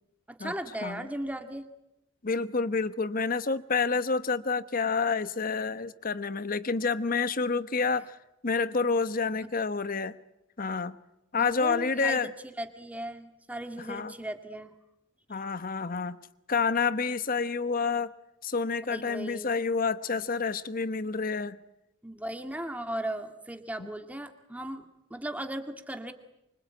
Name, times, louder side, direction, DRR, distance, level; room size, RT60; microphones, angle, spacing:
voice 1, 0.3-1.7 11.4-12.3 12.6-14.7 18.9-19.5 22.0-24.8 25.1-26.1, right 1 dB, 5° right, 2.1 m, -37 dB
voice 2, 2.2-8.2 8.4-10.2 10.6-11.0 11.3-12.3 13.9-14.1 15.3-16.2 16.5-18.1 18.4-21.6 23.8-23.9, left 4 dB, 45° left, 1.0 m, -28 dB
25.5 x 25.0 x 9.0 m
head